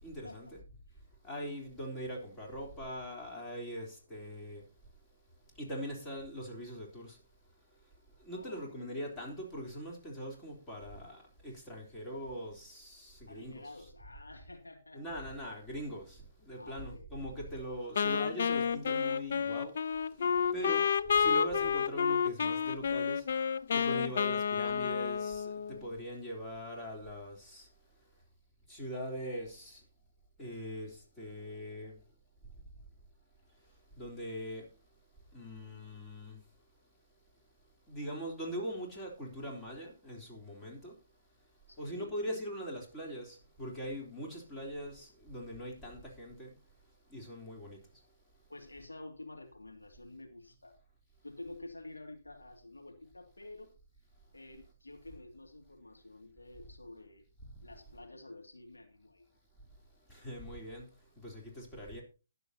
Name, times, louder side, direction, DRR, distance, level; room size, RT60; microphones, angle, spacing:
voice 1, 0.0-0.6 1.2-4.7 5.6-7.2 8.2-13.7 14.9-19.8 20.5-23.3 23.7-27.7 28.7-29.8 30.4-32.0 34.0-34.7 35.3-36.4 37.9-40.9 41.8-46.5 47.1-47.8 60.1-62.0, equal, 15° left, 3.5 m, -42 dB
voice 2, 8.3-9.1 13.3-15.0 16.6-17.1 20.2-20.7 41.7-42.1 48.5-50.7 51.2-53.7 54.3-57.2 57.6-59.3, left 2 dB, 90° left, 2.3 m, -50 dB
Wind instrument woodwind instrument, 18.0-25.9, left 6 dB, 60° left, 0.5 m, -30 dB
20.0 x 7.0 x 2.8 m
figure-of-eight pair, 135°, 0 cm